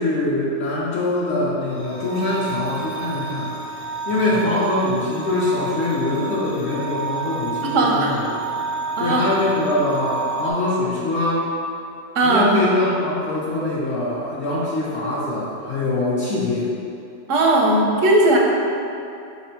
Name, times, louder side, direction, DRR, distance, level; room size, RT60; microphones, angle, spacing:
voice 1, 0.0-3.8 4.1-8.2 9.0-11.4 12.2-16.7, left 2 dB, 65° left, -7 dB, 0.9 m, -23 dB
sound 1, 1.6-10.5, right 4 dB, 85° left, 0.3 m, -30 dB
voice 2, 7.7-8.1 9.0-9.2 12.2-12.5 17.3-18.4, right 2 dB, 90° right, -2 dB, 1.0 m, -17 dB
3.3 x 3.3 x 4.4 m, 2.7 s
omnidirectional pair, 1.3 m